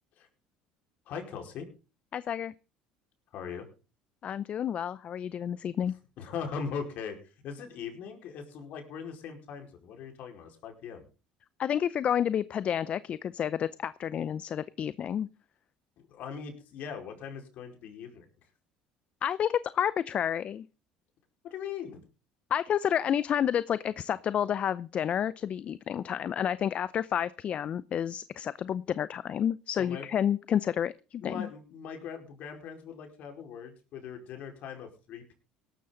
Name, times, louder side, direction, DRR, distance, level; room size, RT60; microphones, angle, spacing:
voice 1, 1.1-1.7 3.3-3.7 6.2-7.2 7.4-11.1 16.0-18.3 21.5-22.0 29.8-30.1 31.2-35.3, left 6 dB, 60° left, 4 dB, 4.8 m, -40 dB
voice 2, 2.1-2.5 4.2-5.9 11.6-15.3 19.2-20.7 22.5-31.5, left 9 dB, 45° left, 17 dB, 0.6 m, -30 dB
17.5 x 12.5 x 3.9 m, 0.33 s
supercardioid pair, 90°, 3 cm